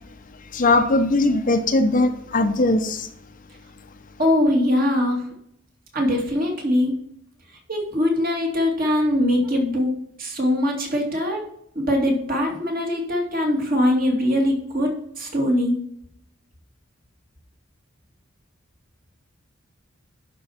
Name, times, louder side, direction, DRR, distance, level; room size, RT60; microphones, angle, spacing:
voice 1, 0.5-3.1, left 2 dB, 40° left, 8 dB, 0.7 m, -20 dB
voice 2, 4.2-5.3 5.9-6.9 7.7-9.9 10.2-11.4 11.7-15.8, left 1 dB, 45° right, 0 dB, 2.4 m, -22 dB
11.0 x 4.5 x 5.7 m, 0.73 s
head